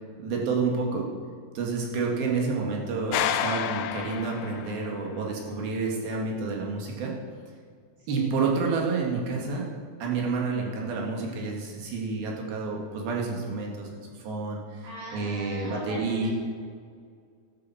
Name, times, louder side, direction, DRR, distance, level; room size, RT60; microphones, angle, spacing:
voice 1, 0.2-1.1 1.6-7.1 8.1-9.7 10.0-13.9 14.2-14.9 15.1-16.3, right 4 dB, 70° right, -1 dB, 3.7 m, -29 dB
sound 1, 3.1-5.1, left 10 dB, 80° left, 2.3 m, -30 dB
voice 2, 14.8-16.3, right 1 dB, 55° right, -6 dB, 3.5 m, -41 dB
12.0 x 8.6 x 7.1 m, 2.1 s
omnidirectional pair, 4.5 m